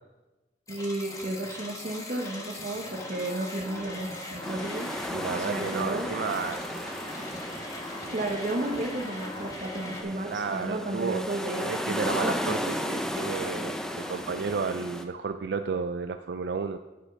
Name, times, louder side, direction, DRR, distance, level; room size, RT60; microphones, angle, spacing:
sound 1, 0.7-10.0, left 1 dB, 20° left, 1.4 m, -40 dB
voice 1, 0.7-4.9 5.3-6.1 8.1-12.4, right 1 dB, 45° right, 4 dB, 1.1 m, -33 dB
sound 2, 4.4-15.0, equal, 5° left, 0.5 m, -35 dB
voice 2, 5.1-6.6 8.0-8.1 10.2-11.3 11.6-16.8, right 5 dB, 65° right, 8 dB, 0.4 m, -32 dB
10.0 x 6.5 x 5.7 m, 1.1 s
head